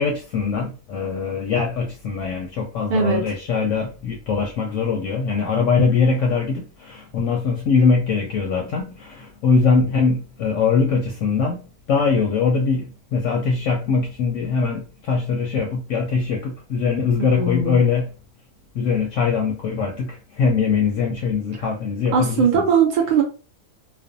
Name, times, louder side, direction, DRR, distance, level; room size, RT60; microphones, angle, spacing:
voice 1, 0.0-18.1 18.7-22.6, left 5 dB, 70° left, 0.8 m, -22 dB
voice 2, 2.9-3.2 17.2-17.8 22.1-23.2, right 6 dB, 85° right, 0.4 m, -19 dB
2.5 x 2.2 x 2.5 m
omnidirectional pair, 1.5 m